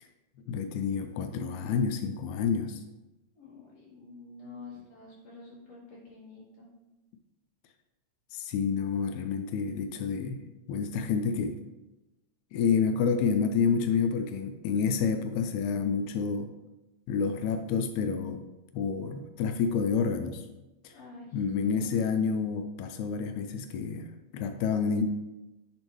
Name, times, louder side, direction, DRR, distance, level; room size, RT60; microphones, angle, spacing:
voice 1, 0.5-2.8 8.3-10.4 10.7-11.6 12.5-16.5 17.1-18.4 18.7-20.4 20.8-20.9 21.3-25.0, left 6 dB, 90° left, 8 dB, 2.0 m, -29 dB
voice 2, 3.3-6.7 20.9-21.9, left 3 dB, 60° left, -7 dB, 3.4 m, -48 dB
8.7 x 5.3 x 3.1 m, 1.0 s
omnidirectional pair, 3.3 m